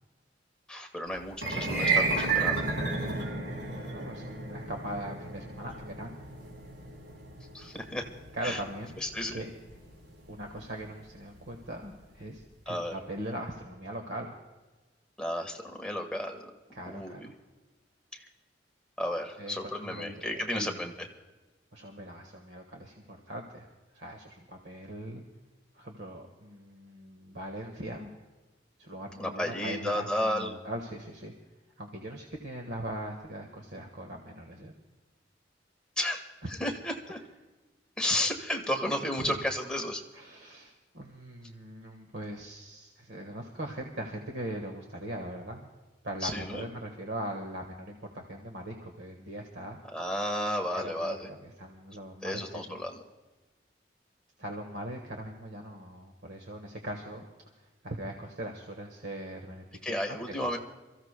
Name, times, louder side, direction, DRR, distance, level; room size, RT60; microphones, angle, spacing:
voice 1, 0.7-2.6 7.5-8.1 8.4-8.6 9.0-9.4 12.7-12.9 15.2-16.5 16.9-17.3 18.1-18.3 19.0-21.1 29.2-30.5 36.0-36.2 36.5-37.2 38.0-40.0 46.2-46.7 49.9-51.3 52.2-53.0 59.8-60.6, left 1 dB, 5° left, 1 dB, 1.4 m, -33 dB
sound 1, 1.3-11.6, right 4 dB, 90° right, 3.8 m, -33 dB
voice 2, 3.7-6.2 8.3-9.0 9.3-9.5 10.3-14.3 16.7-17.3 19.4-20.7 21.7-23.7 23.9-25.2 25.7-28.1 28.8-31.3 31.8-34.7 36.4-36.5 39.2-39.3 40.1-45.7 46.0-49.8 50.7-52.8 54.4-57.3 57.6-60.6, right 1 dB, 70° right, 3 dB, 1.5 m, -40 dB
27.5 x 15.0 x 2.2 m, 1.2 s
head